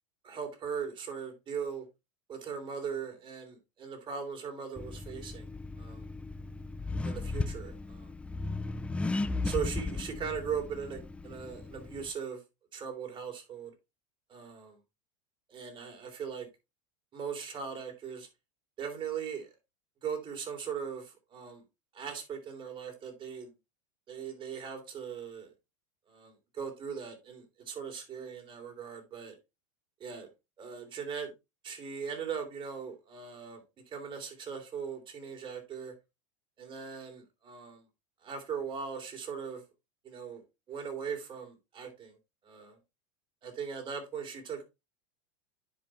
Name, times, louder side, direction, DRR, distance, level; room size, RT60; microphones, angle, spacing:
voice 1, 0.2-1.8 2.3-5.5 5.8-6.1 7.0-8.1 9.4-12.4 12.7-13.7 14.3-14.8 15.5-16.5 17.1-18.3 18.8-19.5 20.0-21.6 21.9-23.5 24.1-25.5 26.1-29.3 30.0-30.3 30.6-31.3 31.6-35.9 36.6-37.8 38.2-39.6 40.0-40.4 40.7-42.2 42.4-42.8 43.4-44.6, right 7 dB, 30° right, 3.3 m, -39 dB
Accelerating revving vroom, 4.8-12.1, left 3 dB, 5° left, 0.4 m, -36 dB
10.0 x 5.2 x 3.1 m
supercardioid pair, 120°, 17 cm